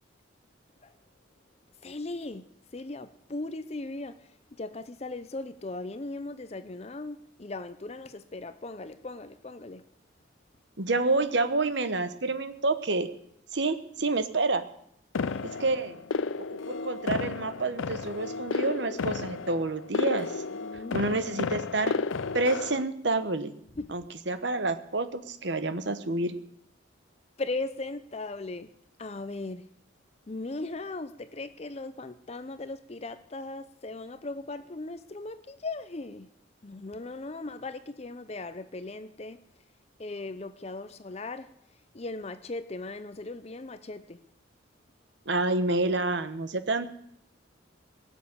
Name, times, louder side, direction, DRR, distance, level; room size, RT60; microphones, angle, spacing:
voice 1, 1.8-9.9 15.2-15.6 20.5-21.1 23.8-24.0 27.4-28.7 29.0-29.7 30.3-36.3 36.6-39.4 40.0-44.2, left 2 dB, 30° left, 12 dB, 0.6 m, -38 dB
voice 2, 10.8-13.1 13.5-14.6 15.6-16.0 16.5-20.4 20.9-21.9 22.3-23.5 23.9-26.4 45.3-46.9, right 2 dB, 65° right, 11 dB, 1.1 m, -28 dB
sound 1, 15.1-22.8, left 4 dB, 90° left, 0.5 m, -32 dB
18.0 x 7.3 x 9.8 m, 0.72 s
head